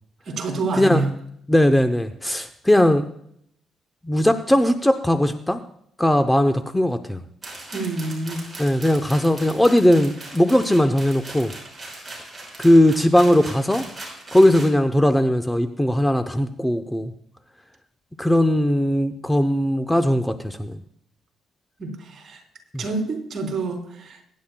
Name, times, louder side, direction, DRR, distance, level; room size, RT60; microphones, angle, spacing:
voice 1, 0.3-1.1 7.7-8.5 21.8-22.4 22.8-24.2, right 3 dB, 50° right, 2 dB, 3.5 m, -27 dB
voice 2, 1.5-3.1 4.0-5.6 6.0-7.2 8.6-11.5 12.6-13.8 14.3-17.1 18.2-20.8 22.7-22.8, left 1 dB, 10° left, 8 dB, 0.7 m, -19 dB
sound 1, 7.4-14.7, right 2 dB, 15° right, 5.6 m, -39 dB
23.0 x 10.5 x 2.3 m, 0.70 s
cardioid pair, 90°, 0 cm